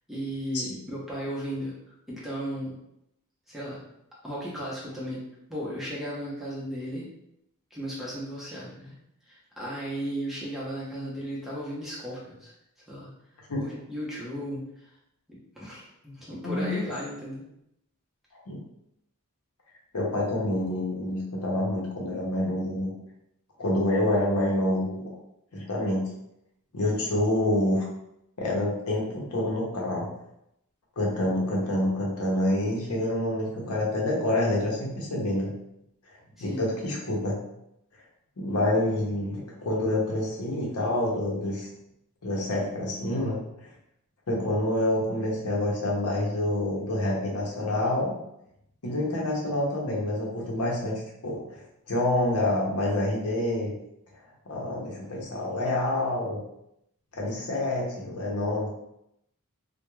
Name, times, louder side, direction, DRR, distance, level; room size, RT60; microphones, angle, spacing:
voice 1, 0.1-1.7 2.1-2.7 3.5-3.8 4.2-5.2 5.5-7.1 7.7-8.9 9.3-12.5 12.9-13.1 13.6-14.6 15.3-17.4 36.4-36.6, equal, ahead, -8 dB, 0.7 m, -35 dB
voice 2, 16.4-16.8 18.5-18.6 19.9-22.9 23.6-25.1 25.5-26.1 26.7-27.9 28.4-30.1 31.0-35.5 36.4-37.4 38.4-41.7 42.2-43.4 44.3-48.2 48.8-51.6 51.9-53.7 54.5-56.4 57.1-58.7, left 1 dB, 85° left, -2 dB, 0.7 m, -27 dB
2.3 x 2.2 x 3.0 m, 0.81 s
head